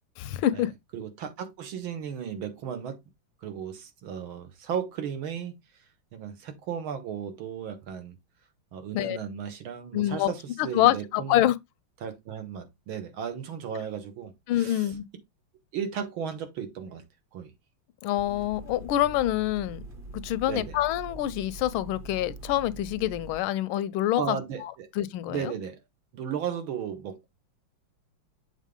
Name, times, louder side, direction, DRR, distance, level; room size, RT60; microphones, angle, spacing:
voice 1, 0.2-0.7 8.9-9.2 9.9-10.3 10.6-11.5 14.5-15.1 18.0-19.8 20.1-25.5, left 13 dB, 85° left, 1.4 m, -26 dB
voice 2, 0.9-3.0 3.4-5.5 6.1-8.2 8.7-11.4 12.0-14.9 15.7-17.0 17.3-17.5 20.4-20.8 24.2-24.9 25.3-25.8 26.1-27.3, right 8 dB, 80° right, 2.0 m, -35 dB
sound 1, 18.2-23.4, right 2 dB, 30° right, 1.2 m, -43 dB
7.3 x 3.9 x 3.6 m
omnidirectional pair, 2.2 m